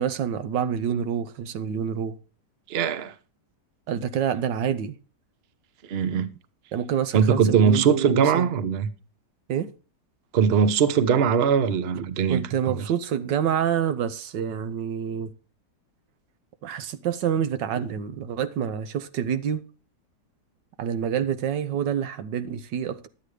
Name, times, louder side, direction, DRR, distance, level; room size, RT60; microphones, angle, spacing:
voice 1, 0.0-2.2 3.9-5.0 6.7-8.5 9.5-9.7 11.9-12.0 12.3-15.3 16.6-19.6 20.8-23.1, right 8 dB, 85° right, 1.6 m, -27 dB
voice 2, 2.7-3.1 5.9-6.3 7.1-8.9 10.3-12.4 12.7-12.8, right 7 dB, 45° right, 0.9 m, -21 dB
11.5 x 8.5 x 4.9 m
omnidirectional pair, 1.9 m